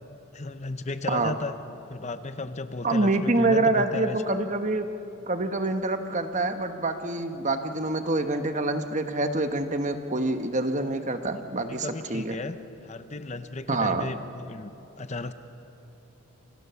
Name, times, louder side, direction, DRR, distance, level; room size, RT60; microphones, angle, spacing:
voice 1, 0.3-1.5 1.9-4.5 11.7-12.6 12.8-14.7 15.0-15.3, left 3 dB, 30° left, 10 dB, 0.8 m, -35 dB
voice 2, 2.8-4.9 5.3-12.4 13.7-14.1, right 2 dB, 35° right, 7 dB, 1.3 m, -26 dB
29.0 x 26.0 x 7.0 m, 3.0 s
head